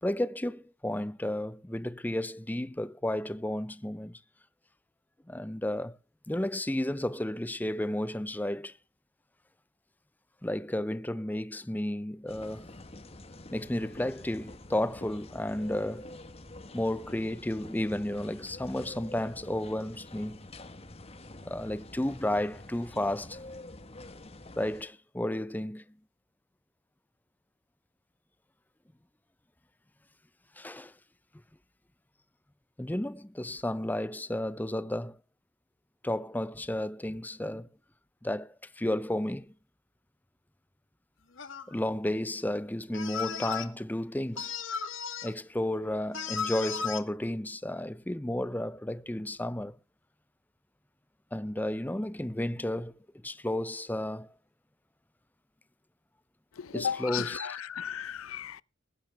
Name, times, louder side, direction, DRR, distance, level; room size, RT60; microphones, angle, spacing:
voice 1, 0.0-4.2 5.3-6.0 6.3-8.7 10.4-12.7 13.5-16.1 16.7-20.4 21.5-23.4 24.6-25.8 30.6-30.9 32.8-35.2 36.0-37.7 38.2-39.5 41.7-44.5 45.2-49.8 51.3-52.9 53.2-54.3 56.7-57.5, left 1 dB, 10° left, 0.6 m, -32 dB
sound 1, 12.3-24.8, left 2 dB, 30° left, 1.5 m, -47 dB
sound 2, 41.4-41.7 42.9-43.6 44.4-45.3 46.1-47.0, left 6 dB, 65° left, 1.9 m, -35 dB
voice 2, 56.6-58.6, left 8 dB, 90° left, 0.6 m, -35 dB
20.5 x 9.7 x 3.4 m
head